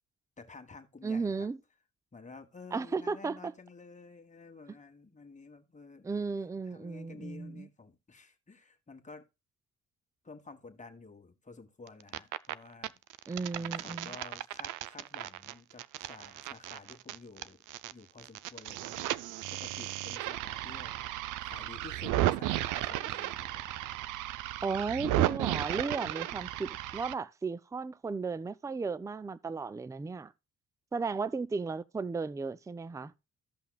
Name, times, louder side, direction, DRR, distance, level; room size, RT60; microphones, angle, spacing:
voice 1, 0.4-1.5 2.1-6.1 6.7-9.3 10.2-13.0 13.6-17.6 17.9-19.1 19.5-23.8, left 4 dB, 25° left, 1.5 m, -51 dB
voice 2, 1.0-1.6 2.7-3.5 6.0-7.7 13.3-14.1 24.6-30.3 30.9-33.1, right 4 dB, 10° right, 0.4 m, -35 dB
sound 1, 11.9-12.5 12.8-17.9 18.2-27.1, right 15 dB, 85° right, 0.5 m, -34 dB
15.0 x 5.7 x 2.3 m
cardioid pair, 90°, 30 cm